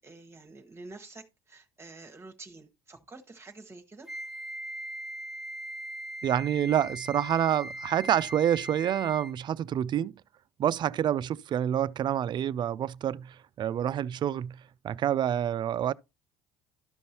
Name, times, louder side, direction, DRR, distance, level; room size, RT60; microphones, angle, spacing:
voice 1, 0.0-4.1, right 3 dB, 25° right, 1.1 m, -48 dB
Wind instrument woodwind instrument, 4.1-9.4, right 1 dB, ahead, 0.7 m, -40 dB
voice 2, 6.2-10.1 10.6-15.9, right 10 dB, 45° right, 0.3 m, -28 dB
12.5 x 5.3 x 2.8 m
supercardioid pair, 85°, 11 cm